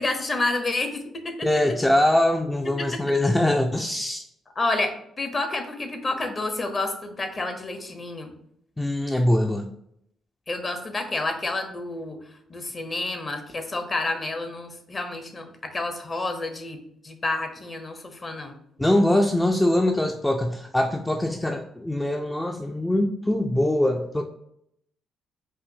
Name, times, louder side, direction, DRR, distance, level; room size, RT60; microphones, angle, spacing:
voice 1, 0.0-1.5 2.8-2.9 4.6-8.3 10.5-12.2 12.5-16.8 17.0-18.6, left 2 dB, 35° left, 6 dB, 0.8 m, -29 dB
voice 2, 1.4-4.2 8.8-9.7 18.8-24.2, left 1 dB, 10° left, 3 dB, 0.4 m, -22 dB
4.9 x 2.5 x 2.7 m, 0.73 s
hypercardioid pair, 45°, 0 cm